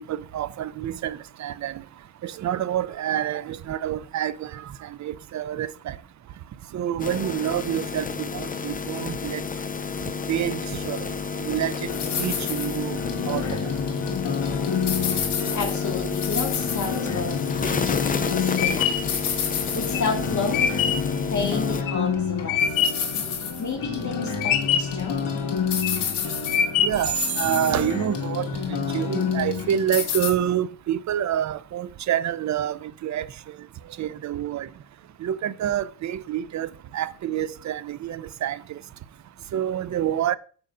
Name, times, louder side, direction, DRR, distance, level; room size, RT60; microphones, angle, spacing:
voice 1, 0.1-1.8 2.2-6.0 6.7-9.4 10.3-11.9 12.2-13.0 13.3-13.7 26.8-33.3 34.0-34.7 35.2-38.8 39.5-40.4, right 10 dB, 40° right, 0.5 m, -28 dB
sound 1, 7.0-21.8, left 5 dB, 20° left, 0.4 m, -30 dB
sound 2, 11.9-30.3, left 6 dB, 55° left, 2.0 m, -28 dB
voice 2, 15.5-19.1 19.4-20.6 21.3-22.9 23.6-25.3, left 4 dB, 35° left, 1.9 m, -31 dB
sound 3, 18.0-23.1 23.6-24.1 24.4-25.1 25.6-26.1 26.5-27.2, left 8 dB, 70° left, 1.3 m, -24 dB
14.0 x 5.3 x 2.5 m
cardioid pair, 110°, 48 cm